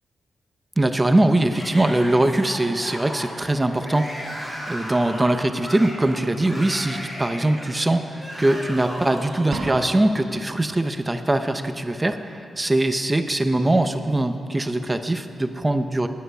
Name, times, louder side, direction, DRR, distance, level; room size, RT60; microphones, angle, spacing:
voice 1, 0.8-4.3 4.7-16.1, right 1 dB, 15° right, 8 dB, 0.6 m, -22 dB
Yell / Screaming, 1.5-9.8, equal, 15° left, 3.1 m, -36 dB
sound 1, 9.5-10.5, right 3 dB, 65° right, 1.5 m, -33 dB
19.5 x 10.5 x 5.5 m, 2.7 s
wide cardioid pair, 155°, 0 cm